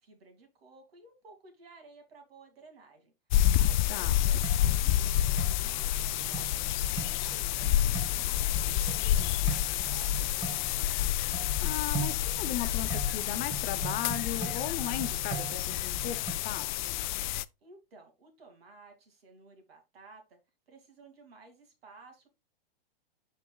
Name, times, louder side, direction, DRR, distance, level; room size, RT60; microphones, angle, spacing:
voice 1, 0.0-3.1 3.6-6.6 6.9-10.5 17.6-20.4 20.7-22.3, right 2 dB, 80° right, 2.6 m, -55 dB
sound 1, 3.3-17.4, left 12 dB, 50° left, 0.4 m, -29 dB
voice 2, 3.9-4.2 11.6-16.8, left 11 dB, 30° left, 1.0 m, -37 dB
sound 2, 4.4-16.3, right 5 dB, 15° right, 1.3 m, -41 dB
11.5 x 4.5 x 2.4 m
hypercardioid pair, 120°, 30 cm